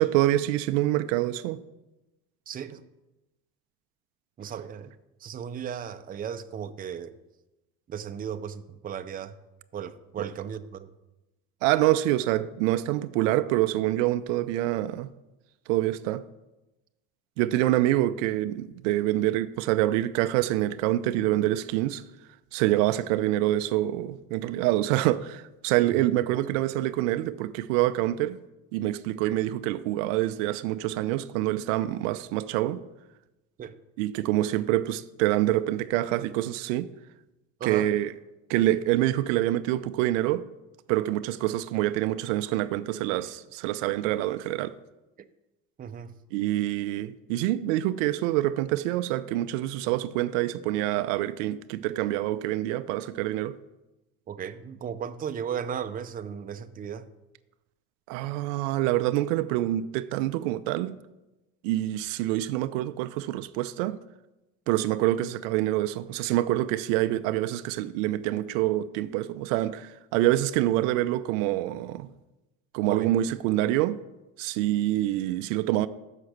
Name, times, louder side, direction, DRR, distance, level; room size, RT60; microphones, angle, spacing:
voice 1, 0.0-1.6 10.2-10.3 11.6-15.1 15.7-16.2 17.4-22.0 22.5-28.4 28.7-32.8 34.0-36.9 37.6-38.1 38.5-40.4 40.9-44.7 46.3-53.5 58.1-61.0 61.6-64.0 64.7-72.1 72.7-74.0 74.4-75.9, right 15 dB, 80° right, 0.5 m, -26 dB
voice 2, 2.5-2.8 4.4-4.9 5.2-7.1 7.9-9.3 9.7-10.9 25.9-26.0 26.3-26.4 33.6-33.7 37.6-37.9 45.8-46.1 54.3-57.1 72.9-73.1, right 8 dB, 25° right, 0.5 m, -35 dB
6.4 x 5.8 x 6.5 m
supercardioid pair, 90°, 37 cm